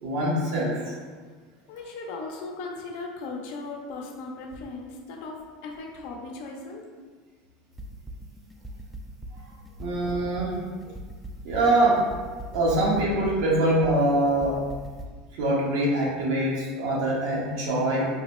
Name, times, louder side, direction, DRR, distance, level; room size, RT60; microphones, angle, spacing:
voice 1, 0.0-0.8 9.8-10.6 11.4-12.0 12.5-14.6 15.4-18.1, right 1 dB, 75° right, -4 dB, 1.0 m, -24 dB
voice 2, 1.7-6.8, left 3 dB, 70° left, 0 dB, 0.5 m, -37 dB
sound 1, 7.8-15.1, right 1 dB, 5° right, 0.3 m, -39 dB
3.8 x 2.1 x 2.9 m, 1.5 s
supercardioid pair, 125°, 0 cm